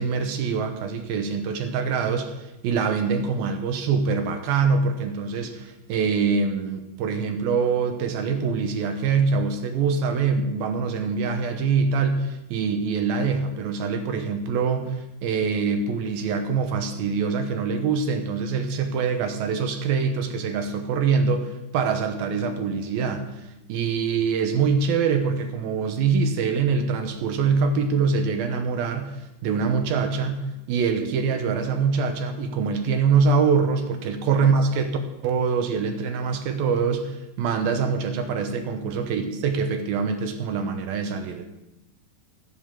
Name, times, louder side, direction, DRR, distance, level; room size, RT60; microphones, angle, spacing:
voice 1, 0.0-2.3 2.6-23.3 23.7-41.5, right 5 dB, 75° right, 6 dB, 2.9 m, -24 dB
15.5 x 7.1 x 7.5 m, 0.97 s
omnidirectional pair, 4.4 m